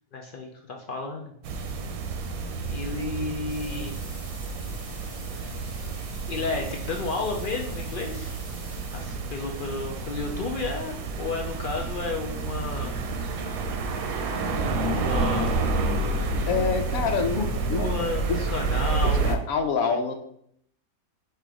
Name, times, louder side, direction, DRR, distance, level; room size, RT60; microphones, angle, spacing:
voice 1, 0.1-1.3 2.6-4.0 5.4-5.6 6.3-8.4 8.9-13.1 14.9-15.6 17.3-19.2, left 4 dB, 65° left, 2 dB, 0.5 m, -32 dB
sound 1, 1.4-19.4, right 3 dB, 90° right, 1.1 m, -29 dB
sound 2, 3.5-9.4 12.2-12.3 12.4-12.5 13.1-13.2 13.3-13.4 13.9-14.1 15.5-15.8 16.3-16.4 17.0-17.5 18.1-18.2, equal, 5° left, 1.1 m, -49 dB
sound 3, 6.4-7.1 7.6-7.7 7.9-8.8 9.6-10.5 11.1-12.1 12.4-13.9 14.2-15.2, right 3 dB, 60° right, 0.7 m, -48 dB
voice 2, 16.5-17.9 18.3-18.5 19.2-20.1, left 5 dB, 85° left, 5 dB, 1.1 m, -26 dB
4.4 x 2.5 x 4.7 m, 0.67 s
omnidirectional pair, 1.5 m